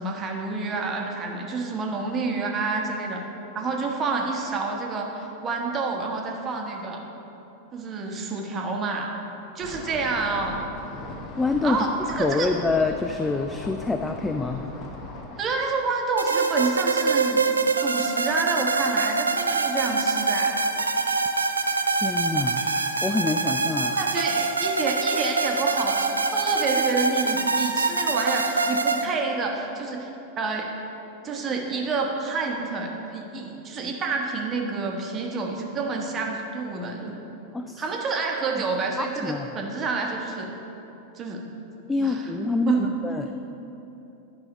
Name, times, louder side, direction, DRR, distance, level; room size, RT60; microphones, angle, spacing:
voice 1, 0.0-3.2 3.5-7.0 7.7-9.1 9.5-10.6 11.6-12.5 15.4-17.4 17.8-20.6 23.9-30.1 30.4-30.7 31.2-37.2 37.8-40.5 41.2-41.4 42.0-42.2 42.7-42.9, right 4 dB, 25° right, 1 dB, 1.2 m, -28 dB
sound 1, 9.6-15.4, left 2 dB, 35° left, 1.1 m, -39 dB
voice 2, 11.4-11.8 12.2-14.7 21.9-22.7 23.0-24.0 37.5-37.8 39.0-39.6 41.9-42.7 43.0-43.3, left 3 dB, 10° left, 6 dB, 0.3 m, -26 dB
sound 2, 16.2-29.0, right 4 dB, 80° right, 0.4 m, -24 dB
10.5 x 5.5 x 5.0 m, 3.0 s
figure-of-eight pair, 90°, 0 cm